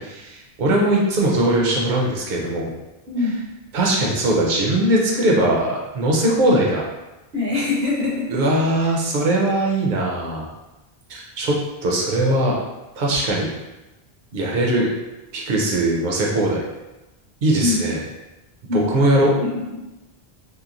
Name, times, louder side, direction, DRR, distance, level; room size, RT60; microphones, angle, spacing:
voice 1, 0.0-2.7 3.7-6.8 8.3-10.5 11.1-12.6 13.0-13.5 14.3-14.9 15.3-16.6 17.4-18.0 18.7-19.3, right 1 dB, 55° right, -2 dB, 0.7 m, -20 dB
voice 2, 3.1-3.4 7.3-8.3 17.6-17.8 18.7-18.9 19.4-19.8, left 3 dB, 75° right, -3 dB, 1.0 m, -23 dB
2.9 x 2.1 x 2.5 m, 1.0 s
omnidirectional pair, 1.1 m